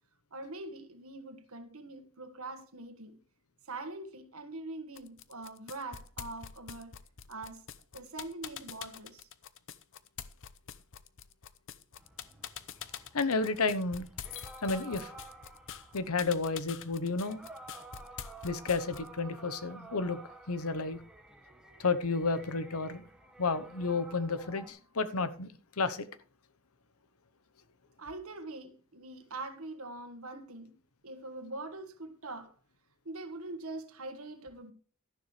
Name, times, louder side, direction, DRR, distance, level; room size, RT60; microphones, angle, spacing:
voice 1, 0.3-3.2 3.6-6.9 7.3-7.6 7.9-9.3 28.0-30.8 31.0-32.5 33.0-34.7, right 2 dB, 70° right, 1.6 m, -43 dB
sound 1, 5.0-19.2, left 8 dB, 60° left, 0.8 m, -45 dB
sound 2, 12.0-24.7, right 2 dB, 5° right, 1.5 m, -52 dB
voice 2, 13.1-14.1 14.6-15.1 15.9-17.4 18.4-20.2 20.5-21.0 21.8-23.1 23.4-26.1, left 4 dB, 80° left, 1.0 m, -31 dB
12.5 x 11.0 x 3.3 m
head